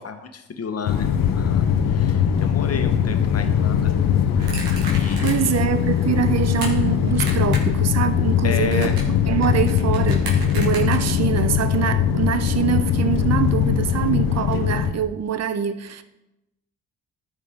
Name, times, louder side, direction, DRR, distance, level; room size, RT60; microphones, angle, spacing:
voice 1, 0.0-3.9 4.7-5.7 8.4-9.0, left 5 dB, 40° left, 1.3 m, -32 dB
sound 1, 0.8-14.9, left 8 dB, 65° left, 1.0 m, -21 dB
sound 2, 4.4-5.6 6.0-6.7 7.1-7.8 8.0-11.4, right 2 dB, 80° right, 1.9 m, -34 dB
voice 2, 5.2-8.9 9.3-16.0, right 8 dB, 45° right, 0.8 m, -24 dB
13.0 x 4.8 x 3.7 m
hypercardioid pair, 45°, 36 cm